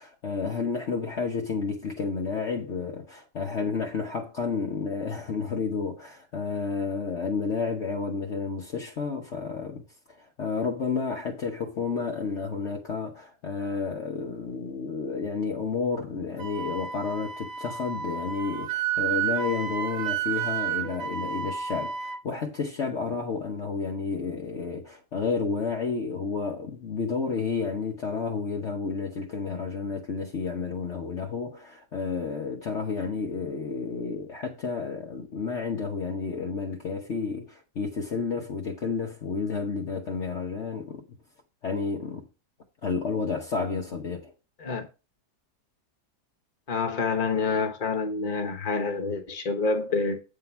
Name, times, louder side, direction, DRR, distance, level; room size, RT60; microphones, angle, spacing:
voice 1, 0.0-9.8 10.2-41.0 41.6-42.3 42.8-44.3, left 5 dB, 50° left, 1.2 m, -31 dB
Wind instrument woodwind instrument, 16.4-22.2, right 8 dB, 75° right, 1.4 m, -31 dB
voice 2, 46.7-50.2, left 4 dB, 30° left, 1.2 m, -27 dB
8.8 x 3.8 x 5.7 m
omnidirectional pair, 1.8 m